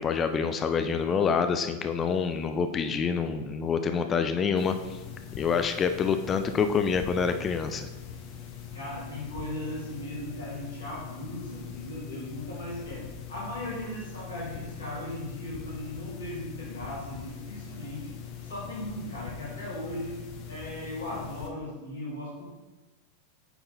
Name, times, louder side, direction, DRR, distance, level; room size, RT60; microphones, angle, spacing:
voice 1, 0.0-5.0 5.4-7.9, left 6 dB, 25° left, 8 dB, 0.4 m, -27 dB
Nice Tape Hiss, 4.6-21.5, left 7 dB, 45° left, 0.9 m, -42 dB
voice 2, 8.7-18.1 18.4-22.4, left 1 dB, 70° left, -5 dB, 2.3 m, -37 dB
8.3 x 3.9 x 4.1 m, 1.2 s
figure-of-eight pair, 90°, 0 cm